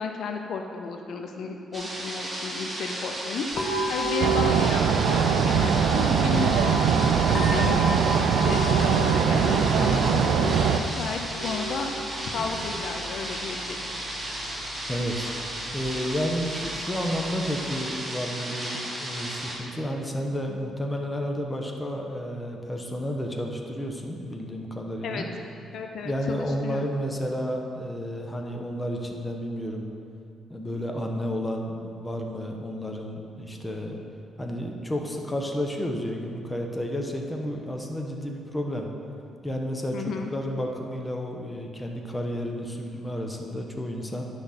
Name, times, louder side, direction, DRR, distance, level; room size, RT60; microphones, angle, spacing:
voice 1, 0.0-3.5 3.9-11.9 12.2-13.8 25.0-25.3 25.7-26.9 39.9-40.3, left 4 dB, 65° left, 4 dB, 0.6 m, -33 dB
sound 1, 1.7-19.6, right 1 dB, 15° right, 1.7 m, -34 dB
sound 2, 3.5-17.5, right 2 dB, 40° left, 1.3 m, -34 dB
sound 3, 4.2-10.8, right 7 dB, 75° right, 0.4 m, -22 dB
voice 2, 14.9-15.3 15.7-25.3 26.0-29.8 30.5-34.0 34.4-38.9 39.4-44.2, equal, 15° left, 2 dB, 1.0 m, -31 dB
10.0 x 6.0 x 4.2 m, 2.5 s
cardioid pair, 90°, 0 cm